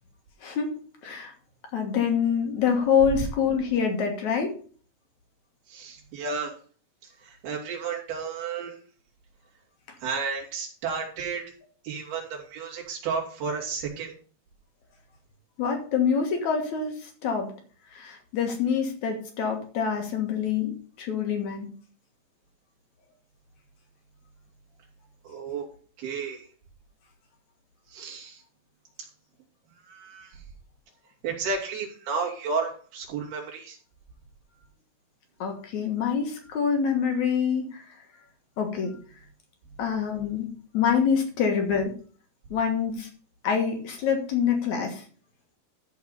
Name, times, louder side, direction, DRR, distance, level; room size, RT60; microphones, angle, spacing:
voice 1, 0.4-1.3 1.7-4.5 15.6-17.5 17.9-21.7 35.4-37.8 38.6-39.0 39.8-41.9 42.5-43.1 43.4-45.0, left 6 dB, 60° left, 3 dB, 2.2 m, -26 dB
voice 2, 5.7-6.5 7.2-8.8 10.0-11.4 11.8-14.1 25.2-25.6 26.0-26.5 27.9-28.4 29.8-30.3 31.2-33.8, right 5 dB, 65° right, -2 dB, 4.5 m, -32 dB
13.5 x 4.8 x 5.5 m, 0.43 s
omnidirectional pair, 4.9 m